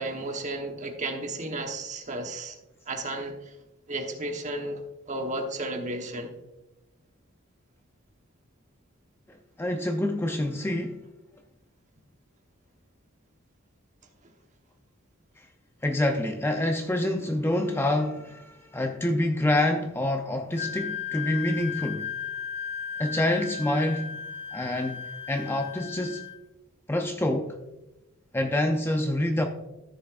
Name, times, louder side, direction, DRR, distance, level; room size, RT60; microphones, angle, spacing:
voice 1, 0.0-2.6 2.9-3.5 3.9-4.8 5.1-6.4, right 2 dB, 35° right, 4 dB, 1.1 m, -33 dB
voice 2, 9.6-11.0 15.8-22.1 23.0-24.2 24.5-26.2 26.9-27.6 28.3-29.5, left 1 dB, 10° left, 4 dB, 0.5 m, -27 dB
Wind instrument woodwind instrument, 20.6-26.4, left 8 dB, 30° left, 0.9 m, -35 dB
13.5 x 6.7 x 2.5 m, 1.0 s
head